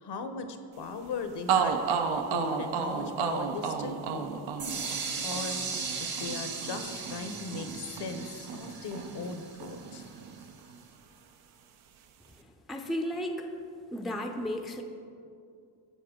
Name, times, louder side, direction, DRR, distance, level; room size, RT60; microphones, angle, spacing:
voice 1, 0.0-1.8 2.3-4.3 5.2-5.6 5.9-10.1, left 4 dB, 55° left, 8 dB, 0.8 m, -38 dB
sound 1, 1.1-1.2 1.5-9.4 9.6-10.8, right 6 dB, 75° right, 0.7 m, -33 dB
sound 2, 4.6-10.4, right 5 dB, 45° right, 1.1 m, -37 dB
voice 2, 12.4-13.5 13.9-14.8, equal, ahead, 5 dB, 0.5 m, -34 dB
12.5 x 4.4 x 3.7 m, 2.5 s
cardioid pair, 75°, 49 cm